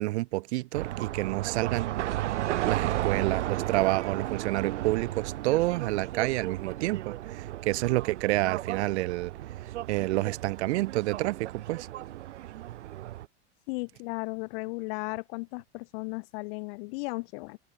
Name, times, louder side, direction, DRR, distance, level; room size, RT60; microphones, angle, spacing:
voice 1, 0.0-1.9 2.6-9.3 9.6-11.9, right 19 dB, 70° right, 0.9 m, -29 dB
sound 1, 0.7-13.3, right 14 dB, 90° right, 1.6 m, -34 dB
voice 2, 13.7-17.6, left 29 dB, 55° left, 1.5 m, -35 dB
supercardioid pair, 135°, 35 cm